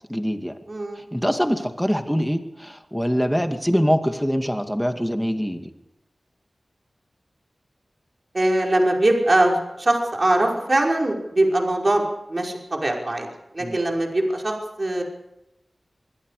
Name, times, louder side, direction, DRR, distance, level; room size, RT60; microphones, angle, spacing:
voice 1, 0.1-0.6 1.0-5.7 13.6-13.8, equal, ahead, 6 dB, 2.4 m, -24 dB
voice 2, 0.7-1.0 8.3-13.3 13.5-15.0, right 1 dB, 40° right, 0 dB, 5.5 m, -22 dB
26.5 x 21.5 x 5.1 m, 0.90 s
wide cardioid pair, 70°, 0 cm